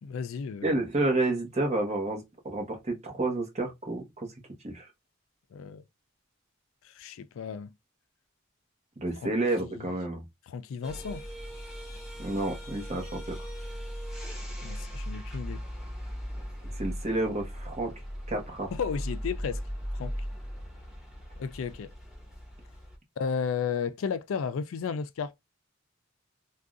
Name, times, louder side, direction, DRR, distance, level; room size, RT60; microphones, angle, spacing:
voice 1, 0.0-0.8 5.5-5.8 6.8-7.7 9.2-9.3 9.7-9.9 10.5-11.2 14.6-15.6 18.7-19.6 19.9-20.2 21.4-21.9 23.2-25.3, left 6 dB, 75° left, 0.4 m, -33 dB
voice 2, 0.6-4.3 4.6-4.9 9.0-10.2 12.2-13.3 16.6-17.9 18.3-18.7, right 2 dB, 35° right, 1.1 m, -30 dB
sound 1, 10.8-23.0, equal, ahead, 1.1 m, -38 dB
3.6 x 2.3 x 2.4 m
head